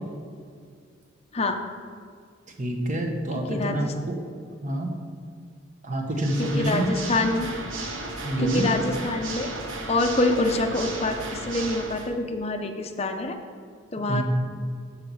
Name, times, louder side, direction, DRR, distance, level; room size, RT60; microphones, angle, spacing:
voice 1, 2.6-3.9 4.6-4.9 5.8-6.9 8.2-8.7 14.1-14.2, right 1 dB, 40° right, 2 dB, 1.2 m, -26 dB
voice 2, 3.5-3.9 6.4-7.5 8.4-9.5 9.9-13.4 13.9-14.2, left 2 dB, 30° left, 4 dB, 0.6 m, -26 dB
Water / Mechanisms, 6.1-12.1, right 2 dB, 70° right, 0.9 m, -35 dB
6.8 x 5.7 x 7.1 m, 2.2 s
head